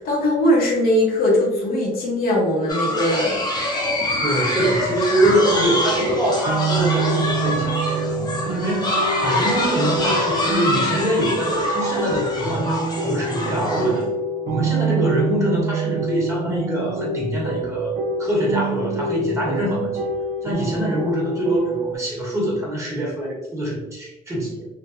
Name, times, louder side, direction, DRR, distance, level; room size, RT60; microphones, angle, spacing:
voice 1, 0.0-3.4, left 1 dB, 60° left, -3 dB, 1.0 m, -20 dB
sound 1, 2.7-14.0, left 1 dB, 25° left, 0.8 m, -25 dB
voice 2, 4.2-8.9 9.2-14.1 14.5-20.1 20.4-24.7, right 1 dB, 15° right, -5 dB, 1.2 m, -24 dB
sound 2, 5.3-22.0, right 3 dB, 45° right, 0.4 m, -26 dB
3.2 x 2.2 x 2.5 m, 1.0 s
cardioid pair, 110°, 17 cm